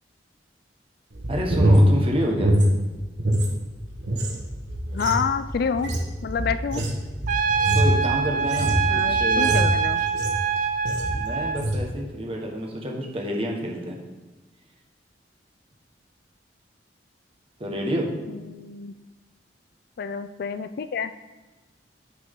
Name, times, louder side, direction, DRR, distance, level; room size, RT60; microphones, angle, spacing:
sound 1, 1.1-3.5 3.8-10.5 10.9-11.2 11.5-11.9, equal, 80° right, 1.4 m, -23 dB
voice 1, 1.3-2.5 7.7-9.6 10.9-14.0 17.6-18.1, equal, 35° right, -1 dB, 1.5 m, -28 dB
voice 2, 4.9-5.9 6.2-6.8 8.9-10.0 18.3-18.9 20.0-21.1, left 6 dB, 60° left, 12 dB, 0.4 m, -28 dB
Trumpet, 7.3-11.6, right 6 dB, 50° right, 0.4 m, -24 dB
8.9 x 6.2 x 3.8 m, 1.2 s
head